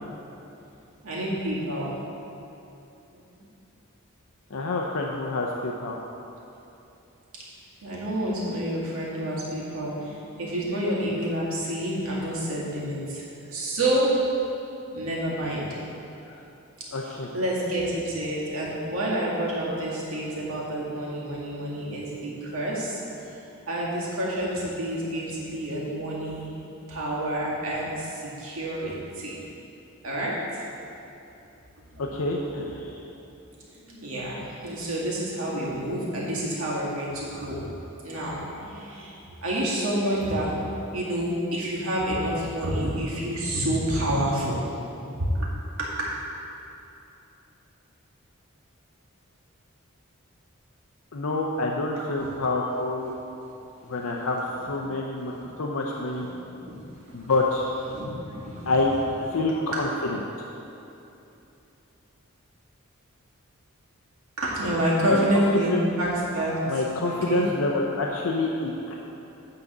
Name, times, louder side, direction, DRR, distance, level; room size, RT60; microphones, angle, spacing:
voice 1, 1.0-1.9 3.1-3.4 7.8-14.2 14.9-15.8 17.0-23.0 23.7-29.3 30.0-30.6 31.9-32.0 33.7-37.7 38.0-44.6 45.8-46.1 52.1-52.3 55.3-55.5 56.1-56.8 57.1-57.3 57.9-58.7 59.3-59.7 64.4-67.5, right 1 dB, 75° right, -6 dB, 2.1 m, -29 dB
voice 2, 4.5-6.0 16.3-16.4 16.9-17.3 32.0-33.0 51.1-53.1 53.9-54.4 54.7-55.3 55.6-56.3 57.1-57.7 58.7-58.9 59.3-60.2 65.1-65.4 65.7-65.8 66.7-69.0, left 2 dB, 75° left, -1 dB, 0.6 m, -27 dB
9.7 x 3.9 x 7.2 m, 2.9 s
head